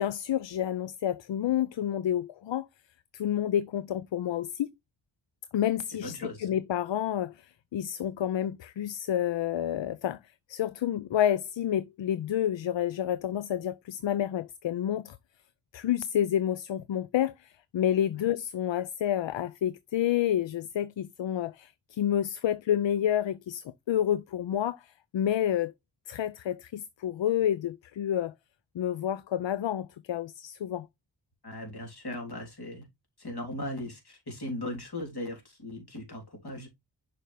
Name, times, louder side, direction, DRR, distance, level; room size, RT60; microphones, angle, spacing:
voice 1, 0.0-2.7 3.1-4.7 5.5-10.2 10.5-15.2 15.7-25.7 26.1-28.3 28.7-30.9, left 10 dB, 70° left, 0.5 m, -29 dB
voice 2, 5.9-6.5 31.4-32.9 33.2-36.7, left 1 dB, 55° left, 3.4 m, -38 dB
6.6 x 5.1 x 3.3 m
cardioid pair, 60°, 47 cm